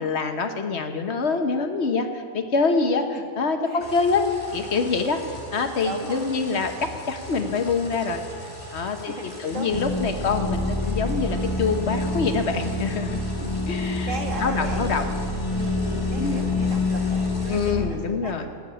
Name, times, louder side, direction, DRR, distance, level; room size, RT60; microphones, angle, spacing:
voice 1, 0.0-4.2 4.5-8.2 8.7-9.1 9.4-13.2 13.7-14.1 14.4-15.0 16.2-16.4 17.5-18.5, left 4 dB, 60° left, 6 dB, 1.3 m, -25 dB
sound 1, 3.8-17.7, left 1 dB, 45° left, 3.0 m, -40 dB
voice 2, 5.8-6.3 9.1-10.0 13.5-15.0 15.4-18.5, right 2 dB, 85° right, 2 dB, 2.2 m, -37 dB
sound 2, 9.7-17.9, left 2 dB, 25° left, 1.1 m, -27 dB
16.5 x 7.9 x 8.8 m, 2.2 s
omnidirectional pair, 1.3 m